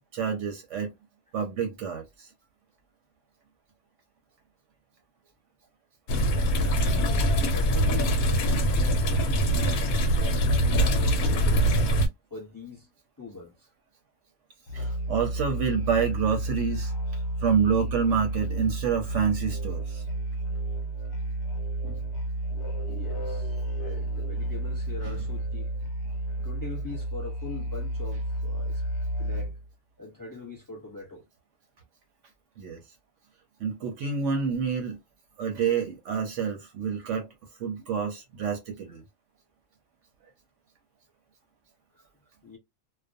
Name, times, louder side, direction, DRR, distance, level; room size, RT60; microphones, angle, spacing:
voice 1, 0.1-0.9 1.3-2.3 14.7-20.0 21.8-21.9 25.1-25.2 32.6-32.8 33.6-35.0 35.4-37.3 37.6-39.0, right 6 dB, 70° right, 0.8 m, -28 dB
sound 1, 6.1-12.1, equal, 90° left, 1.1 m, -23 dB
voice 2, 6.5-9.7 10.1-11.7 12.3-12.9 13.2-13.7 14.8-15.0 22.8-25.7 26.4-28.8 29.2-29.6 30.0-31.2 41.9-42.1 42.4-42.6, left 3 dB, 15° left, 0.8 m, -43 dB
Musical instrument, 14.7-29.7, right 1 dB, 55° left, 0.9 m, -31 dB
2.4 x 2.1 x 2.5 m
omnidirectional pair, 1.5 m